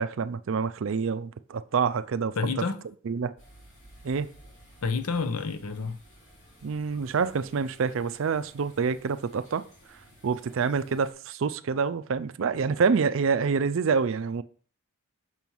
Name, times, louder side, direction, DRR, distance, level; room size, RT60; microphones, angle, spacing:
voice 1, 0.0-2.3 3.1-3.3 4.0-4.3 6.6-9.6 10.2-14.4, right 5 dB, 60° right, 0.4 m, -27 dB
voice 2, 2.4-2.8 4.8-6.0, left 4 dB, 85° left, 0.8 m, -29 dB
sound 1, 3.4-11.1, equal, 35° left, 3.2 m, -55 dB
6.0 x 4.5 x 5.4 m
head